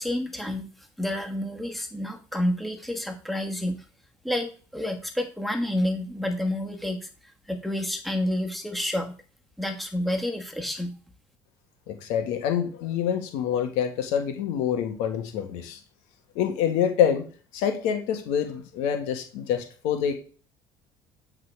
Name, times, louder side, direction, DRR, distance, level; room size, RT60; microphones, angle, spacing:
voice 1, 0.0-3.8 4.2-7.1 7.5-9.1 9.6-10.9, left 1 dB, ahead, 3 dB, 1.6 m, -29 dB
voice 2, 11.9-15.8 16.3-17.2 17.5-20.2, left 8 dB, 85° left, 5 dB, 1.5 m, -26 dB
8.4 x 3.9 x 4.7 m, 0.37 s
supercardioid pair, 90°, 11 cm